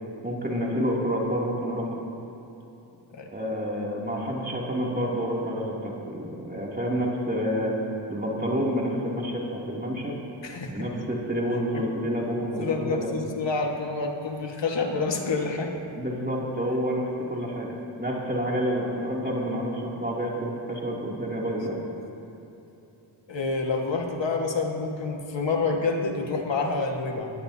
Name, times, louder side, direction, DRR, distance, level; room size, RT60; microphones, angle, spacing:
voice 1, 0.2-1.9 3.3-7.8 8.1-10.1 10.7-13.1 16.0-17.7 18.0-21.8, equal, 20° right, -4 dB, 2.9 m, -28 dB
voice 2, 10.4-10.9 11.7-11.8 12.6-15.7 23.3-27.3, left 4 dB, 65° left, 1 dB, 1.9 m, -28 dB
20.5 x 15.0 x 2.9 m, 2.9 s
cardioid pair, 45°, 48 cm